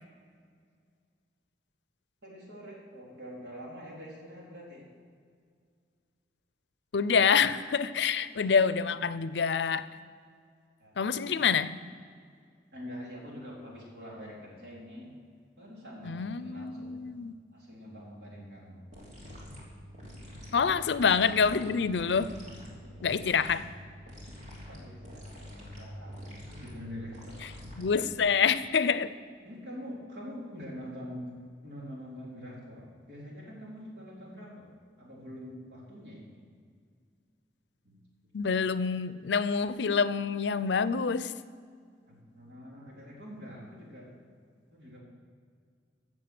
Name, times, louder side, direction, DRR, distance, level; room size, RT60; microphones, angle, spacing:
voice 1, 2.2-4.9 8.0-8.1 10.8-11.5 12.7-15.1 15.6-17.0 17.5-18.9 20.8-20.9 22.8-23.6 24.7-27.5 29.4-31.3 31.6-34.7 35.0-36.4 37.8-38.0 38.2-38.3 42.1-44.1 44.7-45.0, equal, 75° right, -4 dB, 3.8 m, -45 dB
voice 2, 6.9-9.9 11.0-11.7 16.0-17.3 20.5-22.4 23.0-23.6 27.8-29.1 38.3-41.3, left 6 dB, 85° left, 15 dB, 0.5 m, -26 dB
sound 1, 18.9-28.2, equal, 45° right, 3.1 m, -47 dB
15.0 x 7.5 x 6.1 m, 2.1 s
head